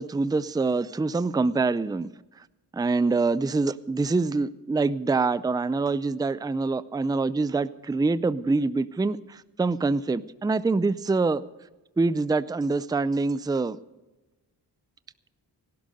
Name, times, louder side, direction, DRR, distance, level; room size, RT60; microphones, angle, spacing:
voice 1, 0.0-2.1 2.7-11.4 12.0-13.8, right 3 dB, 10° right, 0.4 m, -25 dB
18.0 x 11.5 x 5.3 m
cardioid pair, 80°, 40 cm